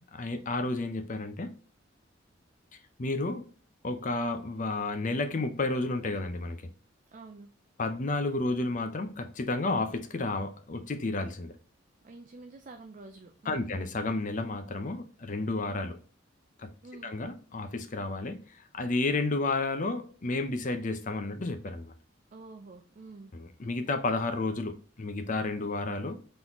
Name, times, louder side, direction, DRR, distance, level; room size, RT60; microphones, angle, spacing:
voice 1, 0.1-1.5 3.0-3.5 3.8-6.7 7.8-11.6 13.5-16.0 16.6-16.7 17.0-18.4 18.7-21.9 23.3-26.1, left 2 dB, 45° left, 0.6 m, -31 dB
voice 2, 7.1-7.5 12.0-13.7 16.8-17.2 22.3-23.3, right 3 dB, 40° right, 0.4 m, -48 dB
4.0 x 3.9 x 2.9 m
head